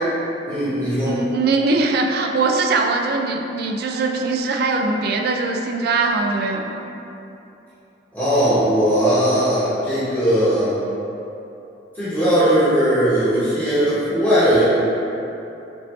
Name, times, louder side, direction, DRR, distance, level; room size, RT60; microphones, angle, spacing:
voice 1, 0.5-1.1 8.1-10.7 11.9-14.7, equal, 10° left, -14 dB, 1.0 m, -18 dB
voice 2, 1.1-6.8, right 3 dB, 60° right, 2 dB, 0.3 m, -21 dB
4.3 x 2.7 x 3.1 m, 2.9 s
head